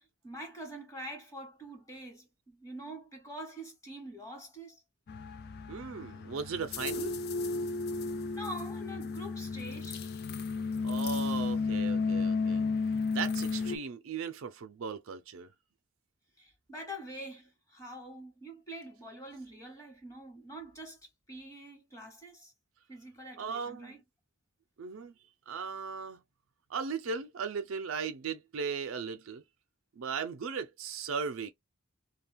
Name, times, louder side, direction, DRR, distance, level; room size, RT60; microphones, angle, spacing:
voice 1, 0.2-4.8 8.3-10.0 16.4-21.0 21.3-22.5 22.9-24.0, right 1 dB, 15° left, 1.1 m, -45 dB
sound 1, 5.1-13.8, left 4 dB, 50° left, 0.4 m, -33 dB
voice 2, 5.7-7.2 10.8-12.6 13.1-15.5 23.4-24.0 24.8-25.1 25.5-26.2 26.7-29.4 30.0-31.5, right 5 dB, 65° right, 0.5 m, -37 dB
2.4 x 2.2 x 3.3 m
head